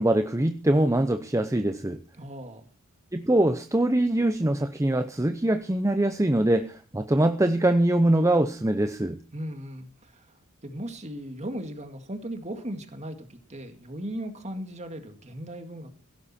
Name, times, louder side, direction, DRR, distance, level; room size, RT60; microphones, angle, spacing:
voice 1, 0.0-2.0 3.1-9.2, right 1 dB, 15° right, 8 dB, 0.7 m, -23 dB
voice 2, 2.1-2.7 9.3-15.9, right 1 dB, 30° right, 7 dB, 2.1 m, -37 dB
16.5 x 11.5 x 4.3 m, 0.35 s
head